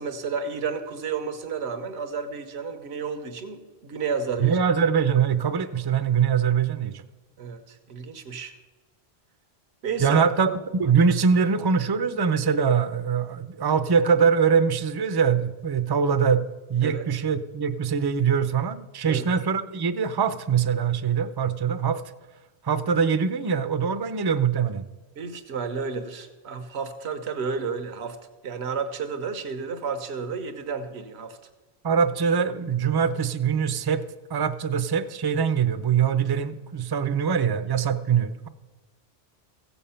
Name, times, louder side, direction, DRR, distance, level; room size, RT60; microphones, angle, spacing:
voice 1, 0.0-4.6 7.4-8.5 9.8-10.6 16.8-17.0 19.1-19.2 25.2-28.2 28.4-31.4, right 5 dB, 80° right, 7 dB, 1.2 m, -31 dB
voice 2, 4.4-7.0 10.0-10.5 10.8-16.4 16.7-22.0 22.6-24.8 31.8-34.0 34.3-38.5, right 6 dB, 30° right, 11 dB, 0.4 m, -23 dB
15.5 x 7.1 x 5.7 m, 1.2 s
omnidirectional pair, 1.1 m